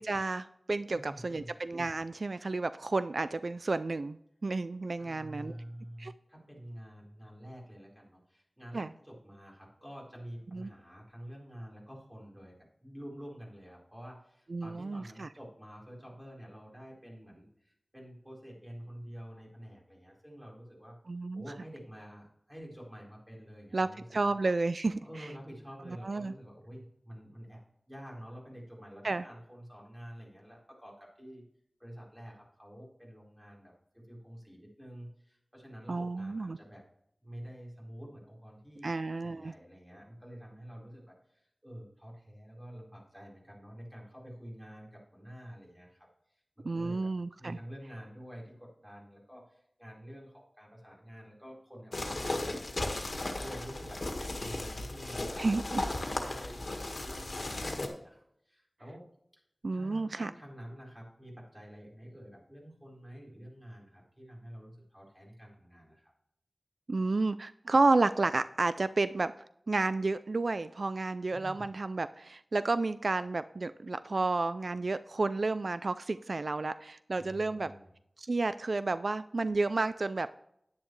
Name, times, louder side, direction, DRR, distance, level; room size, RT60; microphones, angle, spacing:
voice 1, 0.0-4.2 4.4-5.5 6.0-6.1 8.7-8.9 10.5-10.7 14.5-15.3 21.1-21.4 23.7-25.3 26.0-26.3 29.0-29.2 35.9-36.6 38.8-39.5 46.6-47.6 55.4-55.8 59.6-60.3 66.9-69.3 69.7-77.7 78.2-80.3, right 3 dB, 75° right, 13 dB, 0.3 m, -31 dB
voice 2, 0.9-1.5 5.0-12.6 12.8-21.0 21.3-24.3 25.0-27.6 27.9-31.4 31.8-36.8 37.2-38.9 39.2-47.1 47.4-52.9 53.4-59.0 59.7-66.1 71.3-71.7 77.1-77.9, equal, 15° right, -3 dB, 4.3 m, -48 dB
sound 1, 51.9-57.9, left 2 dB, 70° left, 1.7 m, -36 dB
10.5 x 10.0 x 3.2 m, 0.73 s
wide cardioid pair, 65°, 0 cm